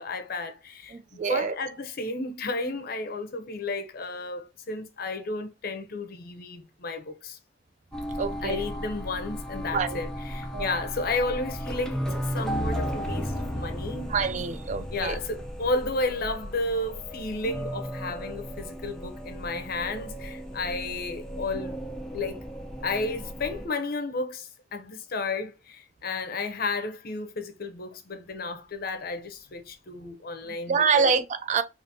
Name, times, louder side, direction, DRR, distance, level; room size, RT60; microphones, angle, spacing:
voice 1, 0.0-7.4 8.4-14.1 14.9-21.8 22.1-22.4 22.8-31.1, left 3 dB, 55° left, 0.7 m, -32 dB
voice 2, 0.9-1.5 8.2-8.6 9.7-10.0 10.5-10.8 14.1-15.2 30.7-31.6, right 5 dB, 40° right, 0.3 m, -26 dB
sound 1, 7.9-23.7, equal, 5° left, 0.6 m, -35 dB
5.0 x 2.5 x 2.7 m
head